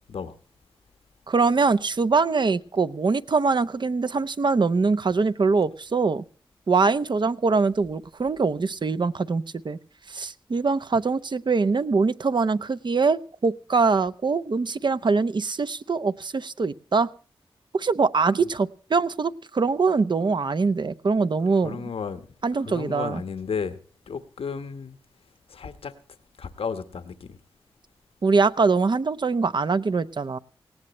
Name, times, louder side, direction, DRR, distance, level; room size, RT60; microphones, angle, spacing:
voice 1, 1.3-6.2 6.7-9.8 10.1-17.1 17.7-21.9 22.4-23.2 28.2-30.4, right 4 dB, 55° right, 0.8 m, -23 dB
voice 2, 21.6-22.3 22.5-23.8 24.1-25.0 25.5-25.9 26.4-27.4, left 6 dB, 90° left, 1.2 m, -33 dB
19.0 x 17.0 x 3.1 m
cardioid pair, 60°, 9 cm